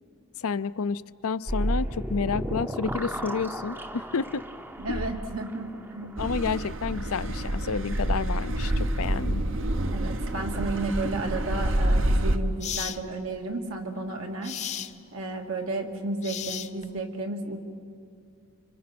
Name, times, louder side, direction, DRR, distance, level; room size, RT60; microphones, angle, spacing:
voice 1, 0.4-4.4 4.9-5.0 6.2-9.4, left 5 dB, 90° left, 15 dB, 0.6 m, -30 dB
sound 1, 1.5-9.0, equal, 10° right, 0.6 m, -35 dB
voice 2, 4.8-6.2 9.9-14.6 15.1-17.6, right 2 dB, 80° right, 2 dB, 2.5 m, -33 dB
Car passing by / Accelerating revving vroom, 6.2-12.4, right 1 dB, 65° right, 1.0 m, -27 dB
sound 2, 11.7-11.9 12.6-13.0 14.4-14.9 16.2-17.0, left 10 dB, 35° left, 0.5 m, -34 dB
29.5 x 25.5 x 6.1 m, 2.3 s
head